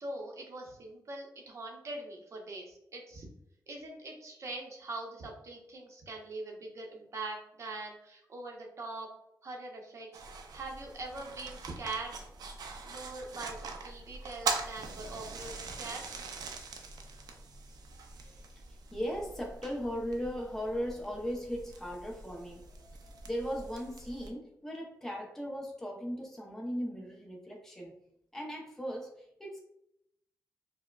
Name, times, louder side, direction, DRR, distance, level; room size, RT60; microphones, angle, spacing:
voice 1, 0.0-3.3 3.7-9.1 9.4-10.2 10.5-12.2 12.9-16.2, right 2 dB, 50° right, 0 dB, 0.7 m, -42 dB
sound 1, 10.1-24.3, right 4 dB, 90° right, 0.4 m, -42 dB
voice 2, 18.7-28.0 28.3-29.6, equal, 5° left, -1 dB, 0.5 m, -38 dB
4.6 x 2.1 x 2.2 m, 0.79 s
wide cardioid pair, 165°, 7 cm